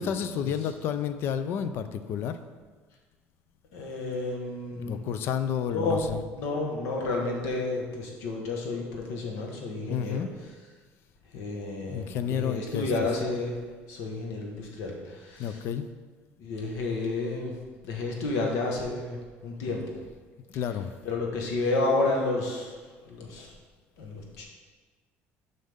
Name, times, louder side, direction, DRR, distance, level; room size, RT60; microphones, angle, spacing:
voice 1, 0.0-2.4 4.8-6.2 9.9-10.3 11.9-12.9 15.4-15.9 20.5-20.9, left 8 dB, 50° left, 11 dB, 0.4 m, -30 dB
voice 2, 3.7-5.0 5.7-10.2 11.3-15.6 16.4-17.5 17.8-20.0 21.0-23.5 24.0-24.4, left 2 dB, 70° left, 0 dB, 1.4 m, -31 dB
7.5 x 5.3 x 3.6 m, 1.4 s
cardioid pair, 160°, 5 cm